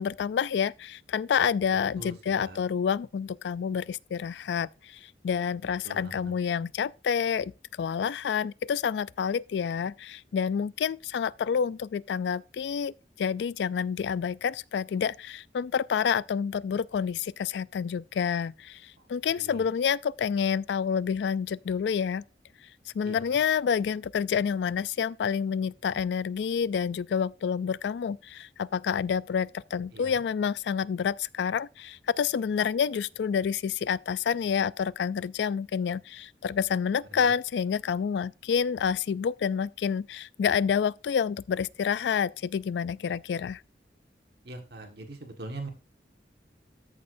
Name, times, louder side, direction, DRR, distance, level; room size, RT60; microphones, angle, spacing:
voice 1, 0.0-7.5 7.8-22.2 22.9-43.6, left 7 dB, 70° left, 0.3 m, -28 dB
voice 2, 5.8-6.3 19.3-19.6 23.0-23.4 29.9-30.1 37.1-37.3 44.4-45.7, right 2 dB, 60° right, 1.5 m, -42 dB
14.0 x 6.5 x 2.6 m
head